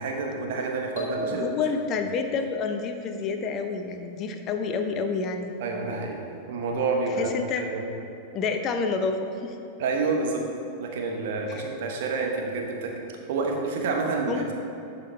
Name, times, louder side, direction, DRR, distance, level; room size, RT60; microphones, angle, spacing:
voice 1, 0.0-1.5 5.6-6.2 6.5-7.8 9.8-10.4 10.8-13.0 13.3-14.5, right 3 dB, 55° right, 1 dB, 1.1 m, -28 dB
sound 1, 1.0-2.1, left 2 dB, 60° left, 1.5 m, -34 dB
voice 2, 1.3-5.5 7.2-7.6 8.3-9.6 11.5-11.6 14.3-14.4, left 5 dB, 35° left, 6 dB, 0.6 m, -28 dB
11.5 x 5.5 x 3.3 m, 2.9 s
figure-of-eight pair, 90°, 0 cm